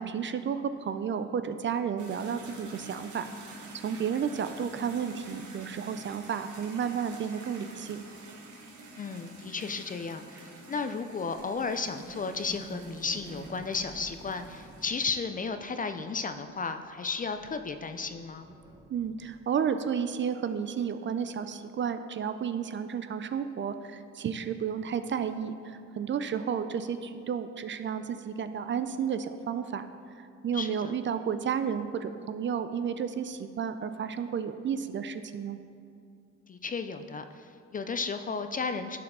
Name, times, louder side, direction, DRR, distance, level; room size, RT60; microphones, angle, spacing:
voice 1, 0.0-3.3 3.7-8.0 18.9-29.9 30.2-35.6, right 7 dB, 40° right, 10 dB, 0.4 m, -32 dB
sound 1, 2.0-14.9, right 2 dB, 75° right, 1.3 m, -48 dB
voice 2, 9.0-10.4 10.7-18.5 30.5-31.0 36.5-39.0, left 4 dB, 30° left, 9 dB, 0.4 m, -34 dB
sound 2, 11.3-16.9 17.2-19.4, right 1 dB, 15° right, 0.8 m, -49 dB
11.5 x 4.7 x 3.7 m, 2.4 s
cardioid pair, 90°, 30 cm